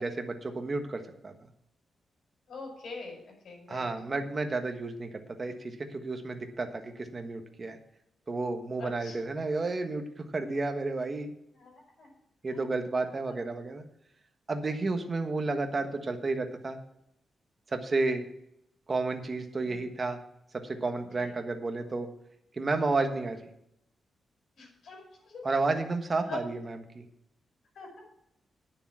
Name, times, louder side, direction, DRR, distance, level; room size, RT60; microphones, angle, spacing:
voice 1, 0.0-1.3 3.7-7.8 8.3-11.3 12.4-13.8 14.5-16.8 17.7-18.3 18.9-20.2 20.5-22.1 22.5-23.4 25.4-27.1, right 3 dB, 30° right, 6 dB, 1.3 m, -31 dB
voice 2, 2.5-4.2 8.8-9.2 11.5-12.1 12.5-12.7 13.0-13.4 14.9-15.0 19.6-19.8 21.2-21.3 24.6-25.4 26.3-26.4 27.7-28.0, left 4 dB, 65° left, 0 dB, 5.5 m, -44 dB
9.8 x 6.8 x 7.4 m, 0.78 s
wide cardioid pair, 125°, 0 cm